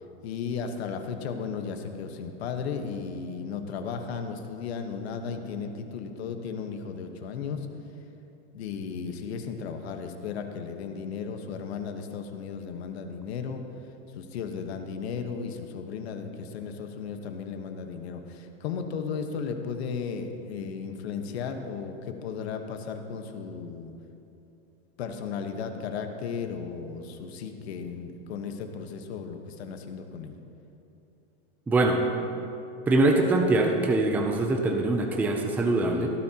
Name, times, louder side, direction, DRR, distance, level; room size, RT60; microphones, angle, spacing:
voice 1, 0.2-7.7 8.5-13.6 14.1-23.9 25.0-30.4, left 6 dB, 80° left, 6 dB, 1.3 m, -35 dB
voice 2, 31.7-32.0 32.9-36.1, right 2 dB, 5° right, 2 dB, 0.4 m, -23 dB
17.5 x 13.0 x 2.9 m, 2.9 s
supercardioid pair, 160°, 31 cm